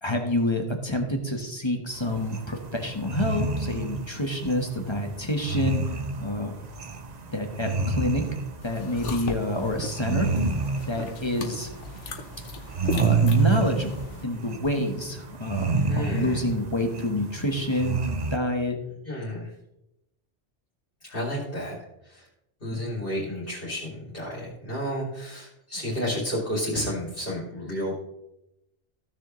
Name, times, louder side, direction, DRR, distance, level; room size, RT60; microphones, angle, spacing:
voice 1, 0.0-6.5 7.3-8.3 8.6-10.3 10.8-11.7 12.9-13.9 14.2-18.0 18.3-18.8 22.7-22.8, left 1 dB, 25° left, 3 dB, 1.2 m, -28 dB
sound 1, 1.9-18.4, right 4 dB, 40° right, 0.8 m, -29 dB
sound 2, 8.6-14.2, left 4 dB, 75° left, 1.3 m, -38 dB
voice 2, 15.9-16.4 19.0-19.5 21.0-21.7 22.1-22.2 22.6-27.9, equal, 50° left, -6 dB, 2.8 m, -31 dB
15.0 x 6.6 x 3.1 m, 0.87 s
omnidirectional pair, 1.2 m